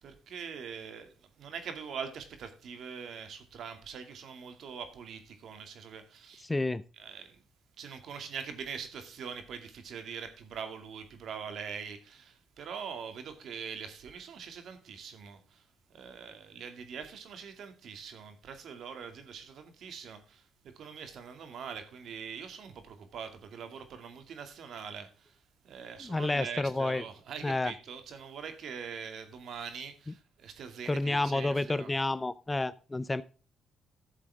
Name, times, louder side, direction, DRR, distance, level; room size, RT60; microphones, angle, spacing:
voice 1, 0.0-6.5 7.0-7.4 7.8-15.6 15.9-20.5 20.7-25.4 25.6-31.9, right 6 dB, 70° right, 2.4 m, -43 dB
voice 2, 6.4-6.8 26.0-27.0 27.4-27.7 30.9-33.2, left 2 dB, 15° left, 0.6 m, -30 dB
13.5 x 7.5 x 3.6 m
cardioid pair, 90°, 0 cm